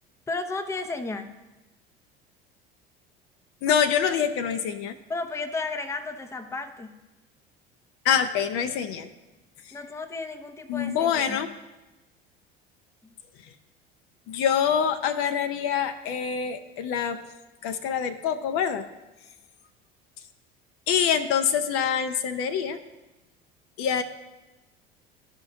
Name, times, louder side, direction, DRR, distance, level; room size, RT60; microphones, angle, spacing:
voice 1, 0.3-1.4 3.7-3.8 4.1-4.2 5.1-7.0 9.7-11.5, left 3 dB, 10° left, 8 dB, 0.5 m, -33 dB
voice 2, 3.6-5.0 8.0-9.1 9.7-9.8 10.7-11.5 14.3-17.2 17.6-18.8 20.9-22.8 23.8-24.0, left 8 dB, 50° left, 10 dB, 0.5 m, -25 dB
12.5 x 5.1 x 2.5 m, 1.1 s
figure-of-eight pair, 65°, 29 cm